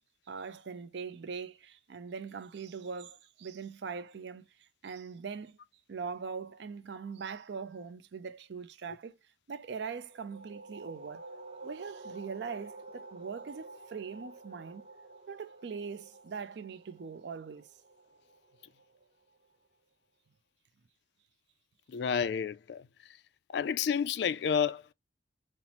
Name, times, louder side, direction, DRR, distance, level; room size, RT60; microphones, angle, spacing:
voice 1, 0.3-5.6 5.9-9.2 9.5-11.3 11.6-14.9 15.3-17.7, right 5 dB, 70° right, 0.4 m, -41 dB
sound 1, 10.0-19.4, right 3 dB, 30° right, 0.7 m, -50 dB
voice 2, 21.9-22.8 23.5-24.9, left 7 dB, 65° left, 0.3 m, -30 dB
5.5 x 2.0 x 2.8 m
head